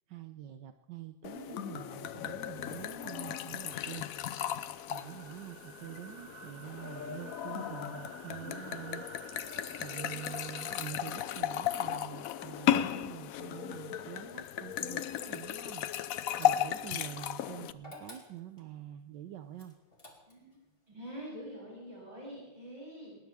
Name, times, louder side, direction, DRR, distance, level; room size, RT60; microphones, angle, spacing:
voice 1, 0.1-4.1 4.9-9.1 9.8-15.9 16.4-19.8, right 12 dB, 70° right, 9 dB, 1.3 m, -46 dB
sound 1, 1.2-17.7, left 11 dB, 65° left, 0.9 m, -35 dB
sound 2, 4.9-10.9, right 5 dB, 45° right, 0.8 m, -51 dB
sound 3, 16.3-17.0 17.8-18.7 19.6-20.5, left 1 dB, 30° left, 3.0 m, -50 dB
voice 2, 20.3-23.2, equal, 20° right, -6 dB, 8.1 m, -46 dB
20.0 x 19.5 x 3.6 m, 1.0 s
omnidirectional pair, 2.1 m